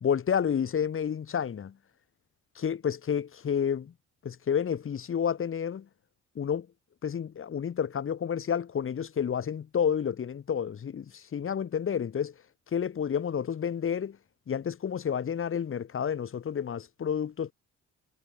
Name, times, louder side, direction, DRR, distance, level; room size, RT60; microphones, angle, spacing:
voice 1, 0.0-1.8 2.5-3.9 4.2-5.9 6.3-6.7 7.0-12.3 12.7-14.2 14.5-17.5, left 8 dB, 45° left, 1.6 m, -30 dB
cardioid pair, 90°, 30 cm